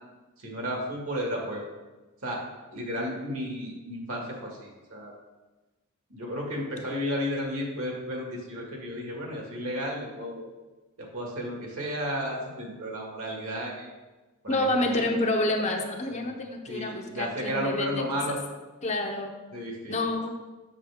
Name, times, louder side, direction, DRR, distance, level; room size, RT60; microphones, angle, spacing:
voice 1, 0.4-1.7 2.2-2.4 2.7-5.2 6.1-10.4 11.0-13.9 14.4-15.1 16.1-16.3 16.7-18.4 19.5-20.0, equal, 70° right, -1 dB, 2.0 m, -33 dB
voice 2, 14.5-18.4 18.8-19.3 19.9-20.3, left 2 dB, 30° left, 3 dB, 0.7 m, -28 dB
7.4 x 6.6 x 3.5 m, 1.2 s
head